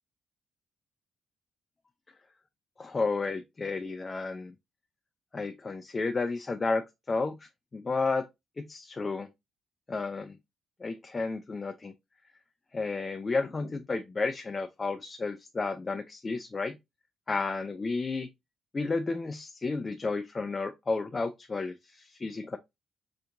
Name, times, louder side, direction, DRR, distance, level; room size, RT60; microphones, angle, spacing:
voice 1, 2.8-4.5 5.3-8.3 8.6-9.3 9.9-10.4 10.8-11.9 12.7-16.8 17.3-18.3 18.7-22.6, left 3 dB, 30° left, 0.3 m, -32 dB
3.3 x 2.9 x 2.4 m
cardioid pair, 90°, 0 cm